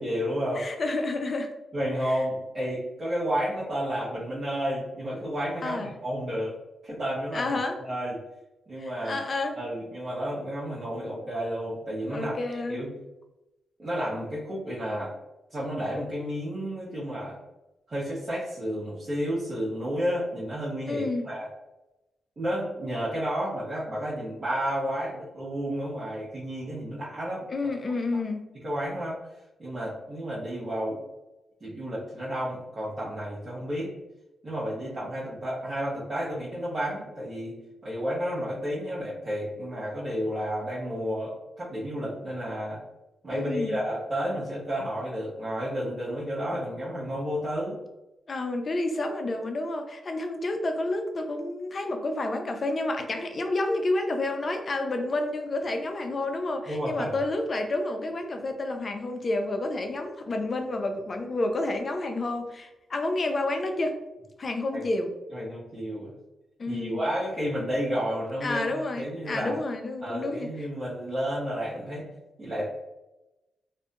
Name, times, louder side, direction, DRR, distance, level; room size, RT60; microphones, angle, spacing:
voice 1, 0.0-0.7 1.7-6.6 6.8-7.5 7.8-8.2 8.7-12.3 12.7-12.9 13.8-15.1 15.5-17.4 17.9-21.5 22.4-27.5 28.6-29.2 29.6-31.0 31.6-33.9 34.4-37.5 37.8-42.8 43.2-47.8 56.7-57.2 64.7-64.8 65.3-66.1 66.7-69.6 70.0-72.1 72.4-72.8, equal, 45° right, -9 dB, 0.9 m, -31 dB
voice 2, 0.5-1.5 2.0-2.1 5.6-5.9 7.3-7.8 8.8-9.6 12.1-12.8 20.9-21.2 27.5-28.4 43.3-43.7 48.3-64.0 64.4-65.1 66.6-67.0 68.4-70.5, left 2 dB, 50° left, 5 dB, 0.4 m, -30 dB
2.6 x 2.5 x 2.2 m, 0.99 s
supercardioid pair, 50°, 0 cm